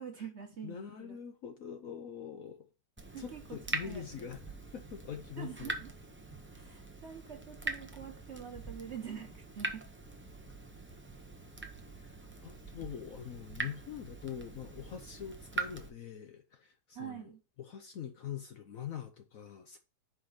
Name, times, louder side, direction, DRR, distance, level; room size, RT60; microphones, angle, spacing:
voice 1, 0.0-1.2 3.1-4.3 5.4-5.9 6.5-9.9 16.9-17.4, right 8 dB, 45° right, 1.2 m, -46 dB
voice 2, 0.6-2.7 3.2-4.4 4.7-5.8 12.0-17.3 17.6-19.8, left 8 dB, 60° left, 1.0 m, -44 dB
Water tap faucet / Drip, 3.0-15.9, right 2 dB, 20° right, 0.3 m, -43 dB
5.3 x 5.1 x 5.6 m
omnidirectional pair, 1.9 m